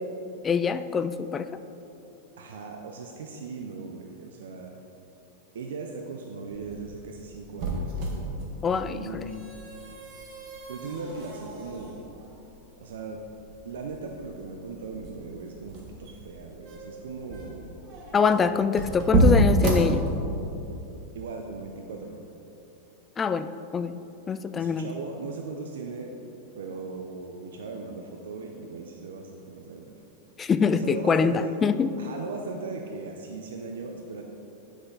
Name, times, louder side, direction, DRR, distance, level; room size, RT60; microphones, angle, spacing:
voice 1, 0.4-1.5 8.6-9.2 18.1-20.0 23.2-23.5 23.7-24.0 24.3-24.9 30.4-31.9, left 5 dB, 20° left, 12 dB, 0.3 m, -24 dB
voice 2, 2.4-4.7 5.5-7.9 8.8-9.4 10.7-12.1 12.8-13.2 13.6-17.8 21.1-22.2 24.6-26.2 26.5-30.0 30.7-31.6 32.0-34.2, right 4 dB, 90° right, 2 dB, 0.6 m, -38 dB
sound 1, 6.6-20.6, right 1 dB, 45° right, 1.6 m, -29 dB
9.8 x 6.1 x 4.0 m, 2.9 s
supercardioid pair, 140°, 0 cm